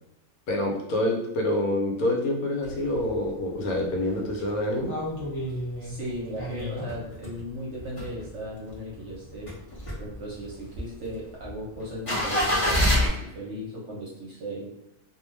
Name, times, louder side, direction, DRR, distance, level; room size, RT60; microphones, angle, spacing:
voice 1, 0.5-4.9, left 1 dB, 75° left, -1 dB, 1.1 m, -27 dB
sound 1, 2.6-3.3 3.7-3.8 4.0-7.4 7.8-8.7 9.1-13.1, left 1 dB, 35° left, 0.6 m, -28 dB
voice 2, 5.8-9.5 10.0-14.7, equal, 60° right, -4 dB, 0.9 m, -37 dB
2.5 x 2.2 x 3.1 m, 0.86 s
omnidirectional pair, 1.5 m